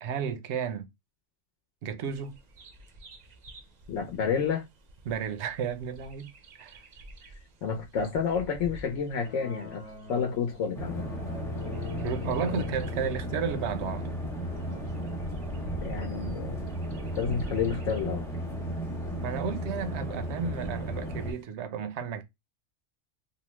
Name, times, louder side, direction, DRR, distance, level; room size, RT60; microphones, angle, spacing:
voice 1, 0.0-0.9 1.8-2.3 5.1-6.3 6.6-6.8 12.0-14.2 19.2-22.2, right 7 dB, 75° right, 0.8 m, -33 dB
Bird vocalization bird call bird song, 2.0-21.4, right 1 dB, 50° right, 0.5 m, -48 dB
voice 2, 3.9-4.6 7.6-9.8 10.1-11.0 12.4-12.6 15.8-16.6 17.2-18.2, left 6 dB, 80° left, 0.9 m, -30 dB
sound 1, 9.2-17.3, left 5 dB, 35° left, 0.9 m, -43 dB
sound 2, 10.7-21.3, equal, 5° left, 0.4 m, -35 dB
2.8 x 2.0 x 2.9 m
omnidirectional pair, 1.2 m